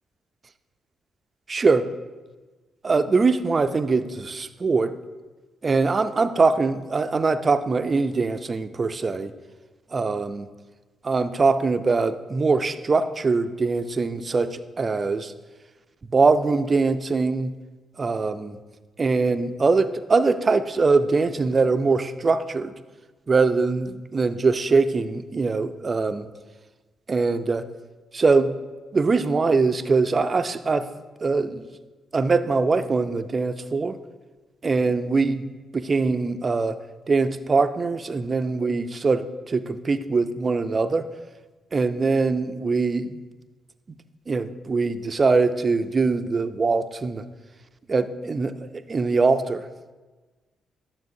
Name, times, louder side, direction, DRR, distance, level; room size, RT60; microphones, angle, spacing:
voice 1, 1.5-1.9 2.8-4.9 5.6-9.3 9.9-10.5 11.0-15.3 16.1-17.5 18.0-18.6 19.0-22.7 23.3-26.3 27.1-27.6 28.1-28.5 28.9-30.9 31.2-31.6 32.1-34.0 34.6-35.4 35.7-36.8 37.1-41.1 41.7-43.2 44.3-47.2 47.9-49.7, right 4 dB, 40° right, 11 dB, 0.5 m, -22 dB
11.5 x 7.1 x 2.7 m, 1.3 s
supercardioid pair, 55°, 0 cm